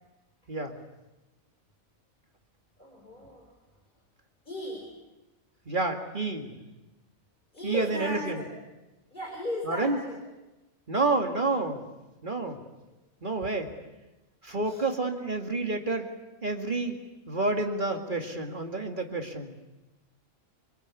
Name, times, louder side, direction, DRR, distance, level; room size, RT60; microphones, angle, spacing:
voice 1, 2.8-3.5 4.5-4.8 7.5-8.5 9.1-10.2 14.6-14.9, left 1 dB, 35° left, -1 dB, 4.9 m, -36 dB
voice 2, 5.7-6.5 7.6-8.4 9.6-10.0 10.9-11.8 12.2-12.6 13.2-13.7 14.4-16.1 16.4-17.0 17.3-19.5, right 3 dB, 35° right, 4 dB, 2.4 m, -29 dB
26.0 x 25.0 x 8.5 m, 1.0 s
omnidirectional pair, 1.4 m